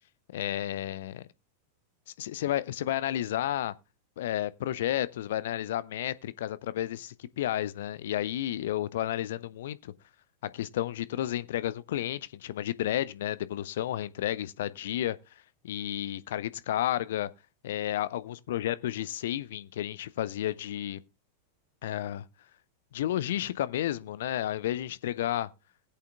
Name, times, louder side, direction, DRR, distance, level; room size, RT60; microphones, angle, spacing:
voice 1, 0.3-1.2 2.2-3.7 4.2-9.9 10.4-15.2 15.6-17.3 17.6-21.0 21.8-22.3 22.9-25.5, left 12 dB, 55° left, 0.6 m, -32 dB
19.5 x 8.5 x 2.3 m
figure-of-eight pair, 90°, 0 cm